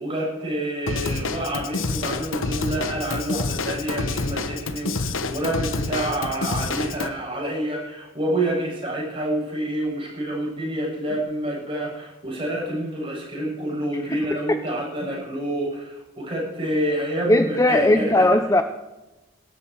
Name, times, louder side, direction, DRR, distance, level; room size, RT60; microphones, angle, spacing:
voice 1, 0.0-18.3, right 1 dB, 25° right, -3 dB, 7.6 m, -28 dB
Drum kit / Drum, 0.9-7.1, left 3 dB, 80° left, 1.2 m, -28 dB
voice 2, 17.3-18.6, left 1 dB, 15° left, 8 dB, 0.7 m, -18 dB
18.5 x 13.0 x 4.7 m, 1.0 s
head